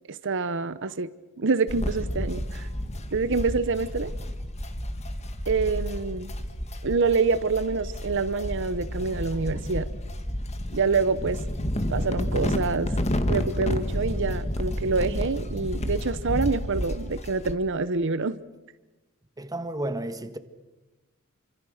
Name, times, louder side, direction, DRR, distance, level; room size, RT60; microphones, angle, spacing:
voice 1, 0.1-1.1 1.4-2.7 3.1-4.1 5.5-6.3 6.8-9.9 10.7-11.4 11.9-12.9 13.3-18.4, right 4 dB, 60° right, 0.8 m, -26 dB
sound 1, 1.7-17.5, equal, 30° left, 1.9 m, -30 dB
voice 2, 19.4-20.4, right 1 dB, 15° right, 1.4 m, -32 dB
28.5 x 25.5 x 6.5 m
head